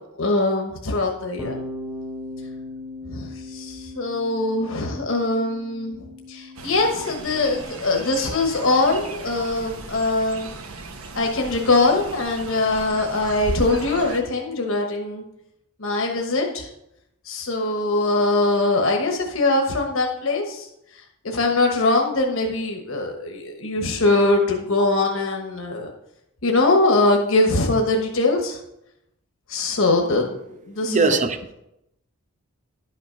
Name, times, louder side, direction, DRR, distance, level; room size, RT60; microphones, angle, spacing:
voice 1, 0.2-1.6 3.1-6.0 6.3-10.5 11.1-15.2 15.8-16.7 17.3-20.7 21.2-25.9 26.4-28.6 29.5-30.4 30.7-31.2, left 2 dB, 70° left, 1 dB, 1.2 m, -22 dB
Bass guitar, 1.4-7.6, left 1 dB, 15° right, 1.1 m, -38 dB
Fowl, 6.6-14.2, right 2 dB, 90° right, 1.1 m, -36 dB
voice 2, 30.8-31.5, right 4 dB, 35° right, 9 dB, 0.7 m, -21 dB
11.5 x 5.8 x 5.1 m, 0.84 s
head